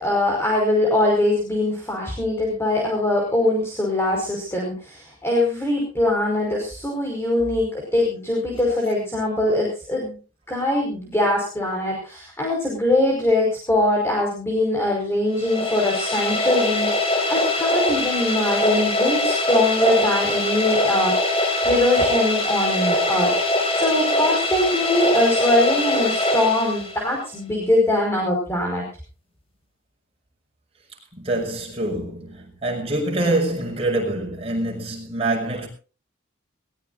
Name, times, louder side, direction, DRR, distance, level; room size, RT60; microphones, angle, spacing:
voice 1, 0.0-10.2 10.5-21.3 21.6-23.3 23.8-28.8, left 1 dB, 10° left, 5.1 m, -22 dB
sound 1, 15.3-27.2, left 1 dB, 30° left, 5.2 m, -22 dB
voice 2, 31.1-35.7, right 2 dB, 30° right, 6.1 m, -25 dB
22.0 x 19.0 x 2.6 m
head